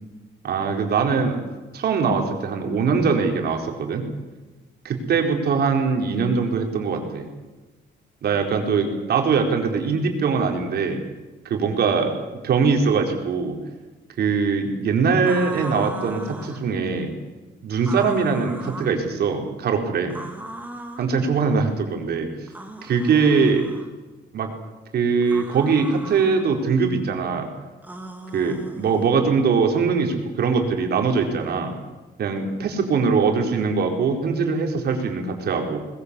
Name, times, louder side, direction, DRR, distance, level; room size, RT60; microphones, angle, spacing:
voice 1, 0.4-1.4 1.7-4.1 4.8-7.3 8.2-11.0 11.4-13.6 14.2-17.1 17.6-20.2 21.0-22.3 22.8-23.7 24.3-24.5 24.9-27.5 28.3-31.7 32.2-35.8, right 5 dB, 60° right, 3 dB, 4.6 m, -22 dB
sound 1, 15.2-16.6 17.8-19.0 20.1-21.1 22.5-23.9 25.2-26.4 27.8-29.1, right 1 dB, 10° right, 2.8 m, -38 dB
20.5 x 20.5 x 8.5 m, 1.2 s
cardioid pair, 145°, 19 cm